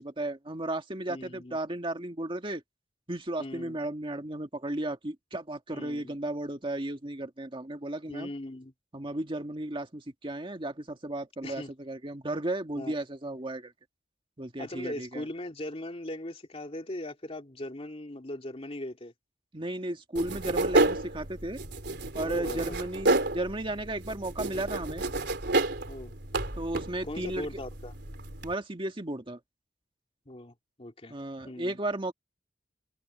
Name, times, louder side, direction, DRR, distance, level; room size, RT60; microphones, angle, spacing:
voice 1, 0.0-2.6 3.1-8.3 8.9-13.7 14.4-15.3 19.5-21.6 22.1-25.0 26.6-27.5 28.4-29.4 31.1-32.1, right 1 dB, 30° right, 1.9 m, -34 dB
voice 2, 1.1-1.6 3.4-3.8 5.7-6.1 8.1-8.7 11.4-11.7 12.8-12.9 14.6-19.1 22.2-22.8 25.9-26.1 27.0-27.9 30.3-31.1 31.5-31.8, left 1 dB, 35° left, 2.6 m, -39 dB
sound 1, 20.2-28.5, right 2 dB, 65° right, 3.8 m, -30 dB
open air
head